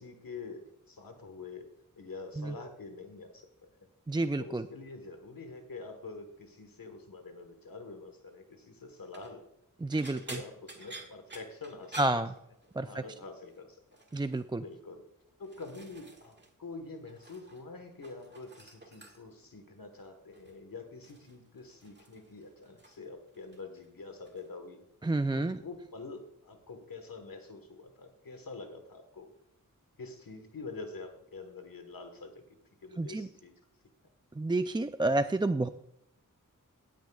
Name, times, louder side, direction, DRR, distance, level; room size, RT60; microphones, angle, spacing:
voice 1, 0.0-1.7 2.0-3.7 4.4-9.4 9.9-12.0 12.8-13.8 14.6-15.0 15.4-16.3 16.6-24.8 25.3-29.3 30.0-32.4 32.8-33.5, left 3 dB, 85° left, 5 dB, 1.4 m, -46 dB
voice 2, 4.1-4.6 9.8-10.4 12.0-12.3 12.8-13.0 14.1-14.6 25.0-25.6 33.0-33.3 34.4-35.7, right 2 dB, 15° right, 10 dB, 0.3 m, -30 dB
sound 1, 9.0-9.3 9.9-13.0 13.2-13.6 13.9-14.4 15.1-16.5 16.8-17.7 17.9-19.4 20.3-20.6 21.0-23.1 23.3-23.9 24.2-24.5 25.7-25.8, right 2 dB, 30° right, 1.7 m, -50 dB
17.0 x 9.3 x 2.4 m, 0.77 s
wide cardioid pair, 75°, 33 cm